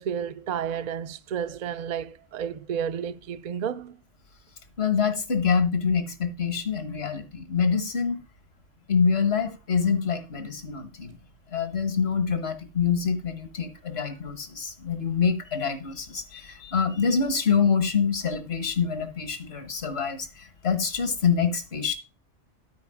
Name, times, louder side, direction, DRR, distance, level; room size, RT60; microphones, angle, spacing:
voice 1, 0.0-4.0, right 8 dB, 55° right, 0.5 m, -31 dB
voice 2, 4.8-8.2 8.9-11.2 11.5-21.9, left 6 dB, 60° left, 1.5 m, -26 dB
12.5 x 4.7 x 4.8 m
omnidirectional pair, 1.2 m